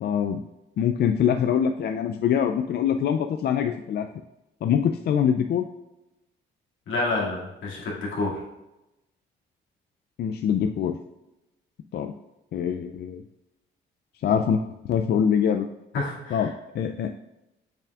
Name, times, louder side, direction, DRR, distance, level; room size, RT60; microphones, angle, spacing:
voice 1, 0.0-0.4 0.8-4.1 4.6-5.7 10.2-11.0 11.9-12.1 12.5-13.2 14.2-15.7 16.3-17.2, left 8 dB, 55° left, 6 dB, 0.4 m, -24 dB
voice 2, 6.9-8.3 15.9-16.5, left 2 dB, 80° left, -4 dB, 2.2 m, -28 dB
6.9 x 5.8 x 2.4 m, 0.95 s
cardioid pair, 90°, 20 cm